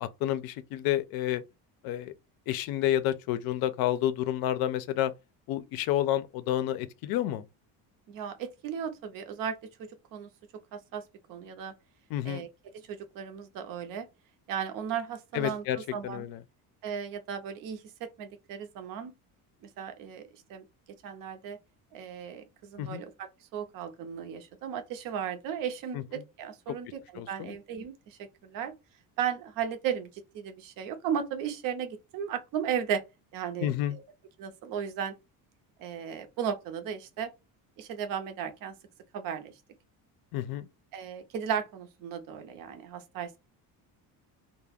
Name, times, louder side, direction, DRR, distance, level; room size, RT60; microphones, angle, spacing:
voice 1, 0.0-1.4 1.8-2.1 2.5-5.1 5.5-7.5 12.1-12.5 15.3-15.8 16.0-16.4 22.8-23.0 25.9-26.0 26.7-26.8 27.2-27.6 33.6-34.0 40.3-40.7, left 12 dB, 65° left, 0.5 m, -30 dB
voice 2, 8.1-10.3 10.7-11.0 11.3-11.7 12.2-12.5 12.9-14.1 14.5-16.3 16.8-19.1 19.8-20.6 21.0-21.6 21.9-28.7 29.2-30.1 30.3-33.0 33.3-34.0 34.4-35.1 35.8-37.3 37.8-38.7 39.1-39.5 40.9-43.4, right 8 dB, 60° right, 0.6 m, -35 dB
2.3 x 2.1 x 3.3 m
cardioid pair, 160°, 38 cm